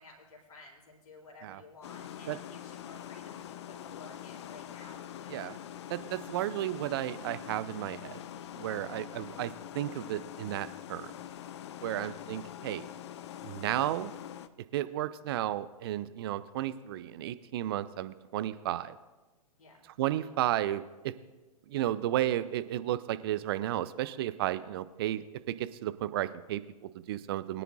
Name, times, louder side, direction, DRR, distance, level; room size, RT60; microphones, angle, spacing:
voice 1, 0.0-5.5 11.8-12.2 19.6-19.8, left 3 dB, 70° left, -1 dB, 3.5 m, -53 dB
sound 1, 1.8-14.5, left 11 dB, 45° left, 0.5 m, -44 dB
voice 2, 5.9-8.2 8.5-11.1 11.8-12.8 13.4-14.1 14.7-19.0 20.0-21.1 21.7-27.6, right 13 dB, 40° right, 15 dB, 0.5 m, -33 dB
21.5 x 10.0 x 2.5 m, 1.2 s
figure-of-eight pair, 115°, 20 cm